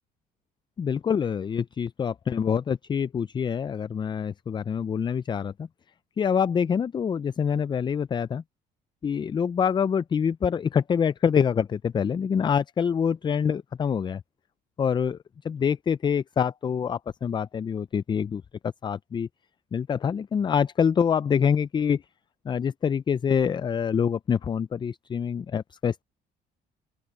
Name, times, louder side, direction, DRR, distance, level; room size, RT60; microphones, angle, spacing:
voice 1, 0.8-5.7 6.2-8.4 9.0-14.2 14.8-15.2 15.4-19.3 19.7-22.0 22.5-26.0, left 7 dB, 25° left, 0.4 m, -26 dB
open air
cardioid pair, 100°, 17 cm